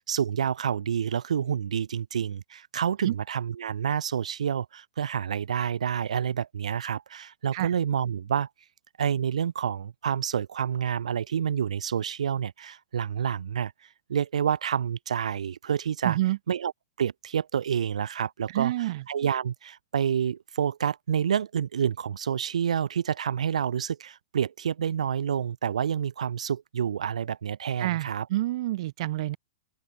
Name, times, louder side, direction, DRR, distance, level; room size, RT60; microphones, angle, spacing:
voice 1, 0.1-8.5 9.0-16.2 16.5-16.7 17.0-28.3, right 8 dB, 85° right, 1.0 m, -28 dB
voice 2, 16.0-16.4 18.5-19.0 27.8-29.4, right 16 dB, 60° right, 1.0 m, -28 dB
open air
hypercardioid pair, 120°, 3 cm